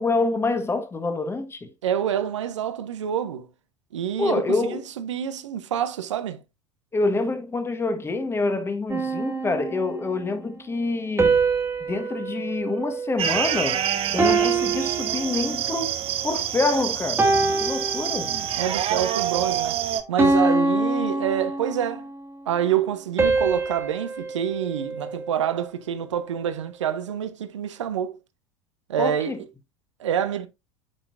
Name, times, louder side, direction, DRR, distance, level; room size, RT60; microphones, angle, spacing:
voice 1, 0.0-1.7 4.2-4.8 6.9-11.4 11.8-13.8 14.1-16.0 16.2-17.3 17.6-18.3 29.0-29.4, left 3 dB, 15° left, 1.4 m, -26 dB
voice 2, 1.8-3.5 3.9-6.4 18.6-22.1 22.5-28.2 28.9-29.3 30.0-30.5, right 9 dB, 70° right, 0.9 m, -27 dB
sound 1, 8.9-10.2 11.2-13.7 14.2-15.9 16.5-16.7 17.2-18.7 19.2-19.5 20.2-22.1 23.2-25.6, right 3 dB, 15° right, 2.0 m, -25 dB
sound 2, 13.2-20.0, right 10 dB, 35° right, 1.0 m, -27 dB
9.1 x 5.9 x 2.6 m
figure-of-eight pair, 75°, 16 cm